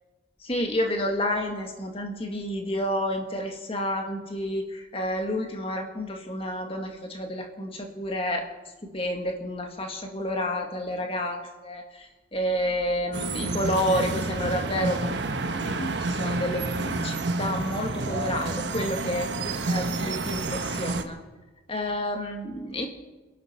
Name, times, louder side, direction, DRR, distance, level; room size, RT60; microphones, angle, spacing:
voice 1, 0.4-8.5 8.9-11.4 11.6-12.1 12.3-15.1 15.5-19.3 19.7-21.2 21.7-22.9, left 1 dB, 30° left, 3 dB, 2.0 m, -30 dB
sound 1, 13.1-21.0, right 3 dB, 65° right, 1.1 m, -29 dB
28.0 x 11.5 x 4.5 m, 1.2 s
head